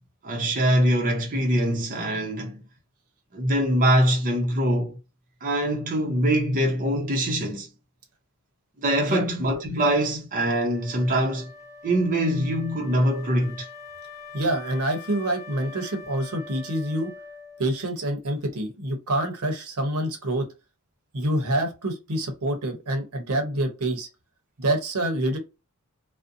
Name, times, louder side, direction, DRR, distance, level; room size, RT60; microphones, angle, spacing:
voice 1, 0.2-2.6 3.3-5.0 5.4-7.7 8.8-11.5 11.8-13.7, right 1 dB, 35° right, 0.6 m, -23 dB
Wind instrument woodwind instrument, 10.3-17.9, left 4 dB, 15° left, 0.4 m, -44 dB
voice 2, 14.3-17.1 17.6-20.5 21.1-24.1 24.6-25.4, right 1 dB, 75° right, 0.8 m, -26 dB
2.5 x 2.1 x 2.6 m
head